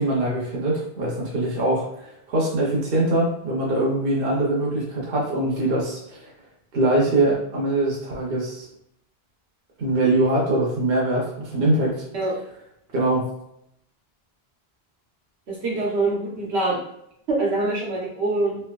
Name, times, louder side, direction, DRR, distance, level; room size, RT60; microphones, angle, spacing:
voice 1, 0.0-6.3 6.7-8.7 9.8-11.9 12.9-13.3, right 2 dB, 65° right, -3 dB, 1.0 m, -23 dB
voice 2, 15.5-16.8 17.4-18.6, right 2 dB, 85° right, -4 dB, 1.2 m, -24 dB
3.2 x 2.6 x 2.3 m, 0.76 s
omnidirectional pair, 1.1 m